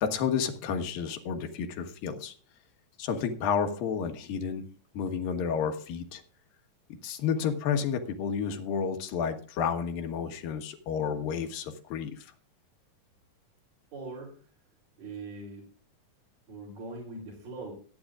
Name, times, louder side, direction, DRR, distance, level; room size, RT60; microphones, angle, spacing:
voice 1, 0.0-2.3 3.0-4.7 4.9-6.2 7.0-12.3, left 7 dB, 75° left, 6 dB, 3.0 m, -31 dB
voice 2, 13.9-14.5 15.0-15.7 16.5-17.7, right 3 dB, 65° right, -4 dB, 5.1 m, -41 dB
23.5 x 9.5 x 2.5 m, 0.43 s
omnidirectional pair, 4.2 m